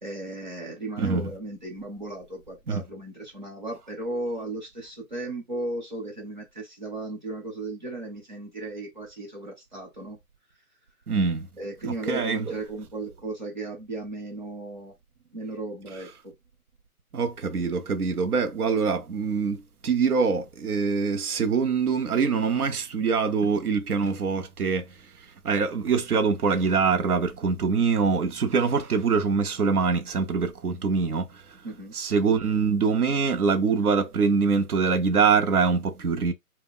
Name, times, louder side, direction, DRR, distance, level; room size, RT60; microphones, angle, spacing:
voice 1, 0.0-10.2 11.6-14.9 15.3-16.3 31.6-31.9, right 2 dB, 30° right, 0.9 m, -35 dB
voice 2, 1.0-1.3 2.7-2.8 11.1-11.5 11.8-12.5 17.1-24.8 25.4-31.3 31.9-36.3, right 5 dB, 85° right, 0.8 m, -24 dB
2.2 x 2.2 x 3.6 m
hypercardioid pair, 170°, 44 cm